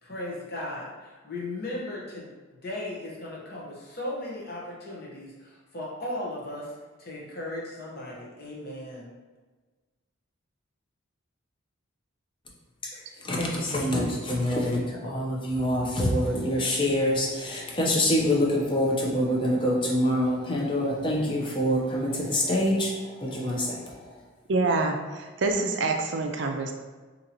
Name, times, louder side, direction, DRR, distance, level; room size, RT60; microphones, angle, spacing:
voice 1, 0.0-2.3 2.6-6.7 7.0-9.1, left 1 dB, 50° left, -4 dB, 0.9 m, -36 dB
voice 2, 12.8-24.2, left 1 dB, 25° left, -2 dB, 0.6 m, -26 dB
voice 3, 24.5-26.7, right 3 dB, 60° right, 4 dB, 0.4 m, -26 dB
2.8 x 2.8 x 4.0 m, 1.3 s
head